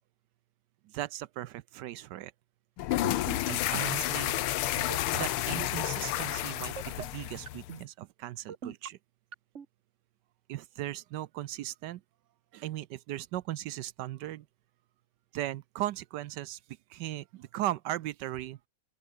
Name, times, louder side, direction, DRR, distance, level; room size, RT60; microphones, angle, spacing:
voice 1, 0.8-2.3 3.5-4.4 5.2-9.0 10.5-12.0 12.5-14.5 15.3-16.6 16.9-18.6, right 14 dB, 75° right, 1.0 m, -37 dB
sound 1, 2.8-7.8, left 14 dB, 80° left, 1.7 m, -31 dB
sound 2, 2.9-3.4 3.7-4.0 4.8-5.3 5.6-5.9 6.6-7.0 7.5-7.8 8.5-8.9 9.3-9.7, right 6 dB, 40° right, 1.4 m, -40 dB
open air
omnidirectional pair, 2.4 m